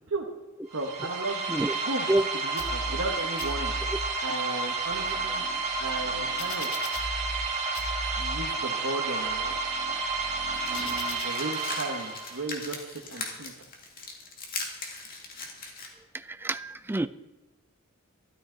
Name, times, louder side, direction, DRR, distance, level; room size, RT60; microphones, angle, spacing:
sound 1, 0.7-12.6, right 4 dB, 35° right, 2.3 m, -31 dB
voice 1, 0.7-1.4 1.9-2.1 2.4-3.7 4.2-5.5 5.8-6.7 8.2-9.6 10.6-13.7, right 2 dB, 65° right, 0 dB, 1.1 m, -35 dB
sound 2, 2.6-3.1 3.4-4.1 4.7-7.5 7.7-8.5 9.0-11.2, left 2 dB, 70° left, 1.4 m, -39 dB
sound 3, 10.5-15.9, left 3 dB, 45° left, 2.2 m, -39 dB
voice 2, 16.1-17.1, right 1 dB, 10° right, 13 dB, 0.4 m, -27 dB
13.0 x 12.5 x 3.9 m, 1.1 s
head